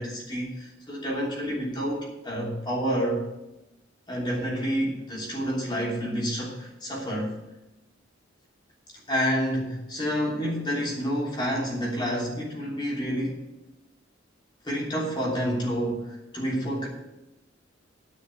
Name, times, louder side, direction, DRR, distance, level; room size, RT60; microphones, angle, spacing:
voice 1, 0.0-3.2 4.1-7.4 9.1-13.4 14.6-16.9, equal, 25° left, -4 dB, 3.1 m, -29 dB
9.9 x 5.7 x 8.3 m, 0.94 s
head